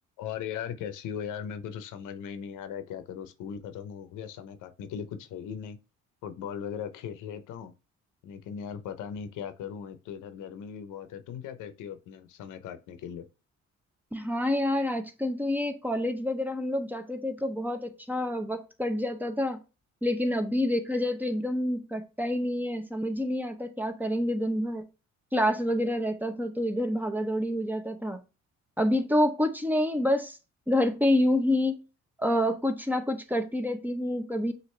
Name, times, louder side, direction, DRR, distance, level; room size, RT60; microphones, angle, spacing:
voice 1, 0.2-5.8 6.2-7.7 8.2-13.3, left 8 dB, 85° left, 0.7 m, -38 dB
voice 2, 14.1-19.6 20.0-24.8 25.3-28.2 28.8-30.4 30.7-31.8 32.2-34.5, left 1 dB, 5° right, 0.7 m, -28 dB
6.2 x 2.6 x 3.1 m
cardioid pair, 90°, 30 cm